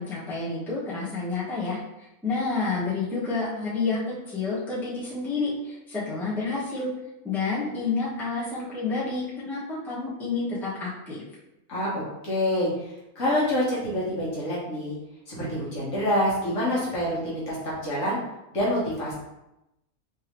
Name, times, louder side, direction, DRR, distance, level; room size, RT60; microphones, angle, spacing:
voice 1, 0.0-6.9 7.2-11.2, left 4 dB, ahead, -9 dB, 1.1 m, -29 dB
voice 2, 11.7-12.7 13.1-15.0 15.3-18.2 18.5-19.1, left 1 dB, 60° left, -7 dB, 1.7 m, -26 dB
3.5 x 3.3 x 3.1 m, 0.91 s
omnidirectional pair, 1.5 m